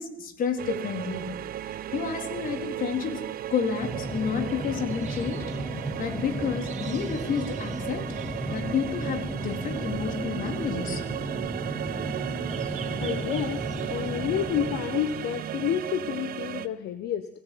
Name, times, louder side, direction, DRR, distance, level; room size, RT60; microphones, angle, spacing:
voice 1, 0.0-1.4 1.9-3.2 3.5-5.5 6.0-8.1 8.5-11.3, left 7 dB, 55° left, 6 dB, 4.0 m, -30 dB
sound 1, 0.6-16.7, right 11 dB, 60° right, 1.2 m, -35 dB
sound 2, 3.7-15.5, right 7 dB, 45° right, 2.5 m, -49 dB
sound 3, 3.8-14.8, right 1 dB, 10° left, 6.3 m, -34 dB
voice 2, 13.0-13.6 13.9-17.3, left 10 dB, 75° left, 10 dB, 1.4 m, -29 dB
22.0 x 16.0 x 9.4 m, 0.77 s
cardioid pair, 110°, 17 cm